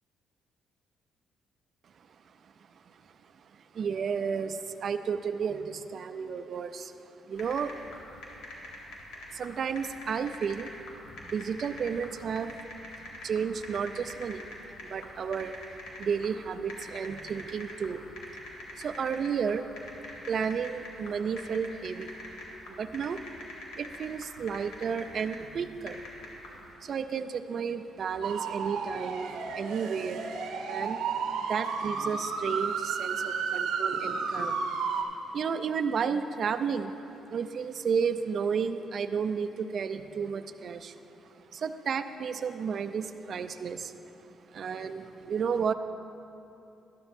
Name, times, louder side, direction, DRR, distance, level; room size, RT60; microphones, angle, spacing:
voice 1, 3.5-6.9 7.3-7.8 9.3-10.7 11.2-12.6 13.0-19.7 20.3-22.2 22.7-23.2 23.7-26.1 26.6-37.0 37.3-41.0 41.2-43.9 44.3-45.7, right 6 dB, 55° right, 10 dB, 0.5 m, -33 dB
sound 1, 7.4-26.7, left 1 dB, 90° left, 1.9 m, -45 dB
sound 2, 28.2-35.0, right 5 dB, 85° right, 0.8 m, -32 dB
12.5 x 12.0 x 2.6 m, 2.9 s
cardioid pair, 90°, 0 cm